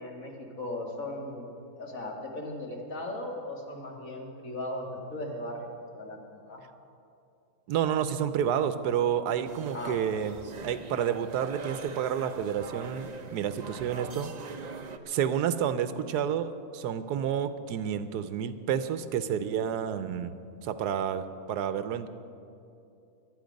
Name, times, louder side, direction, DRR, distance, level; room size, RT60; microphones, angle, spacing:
voice 1, 0.0-6.6 9.7-10.0, left 1 dB, 60° left, 0 dB, 2.2 m, -38 dB
voice 2, 7.7-10.4 10.6-14.3 15.1-20.3 20.6-21.2 21.5-22.1, right 8 dB, 90° right, 12 dB, 1.3 m, -29 dB
sound 1, 9.5-15.0, right 4 dB, 50° right, 0.5 m, -42 dB
23.5 x 9.3 x 5.2 m, 2.6 s
omnidirectional pair, 1.7 m